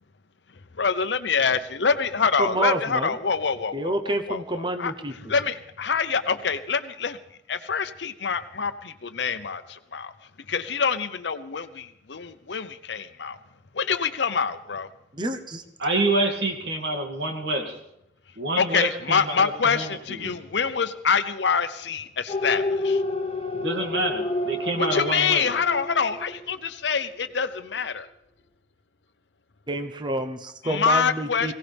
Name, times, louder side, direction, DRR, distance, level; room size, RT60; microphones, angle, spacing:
voice 1, 0.8-7.2 7.5-10.1 10.5-13.4 13.7-14.9 18.6-23.0 24.8-28.1 30.6-31.5, left 6 dB, 75° left, 11 dB, 0.8 m, -26 dB
voice 2, 2.4-3.1 3.7-5.1 15.1-15.6 29.7-31.5, right 1 dB, 25° right, 7 dB, 0.9 m, -28 dB
voice 3, 15.8-17.8 18.4-20.3 23.5-25.5, right 2 dB, 75° right, 3 dB, 2.3 m, -27 dB
sound 1, 22.3-26.8 27.2-27.3, left 2 dB, 35° left, 1.2 m, -29 dB
21.5 x 17.0 x 3.5 m, 0.81 s
head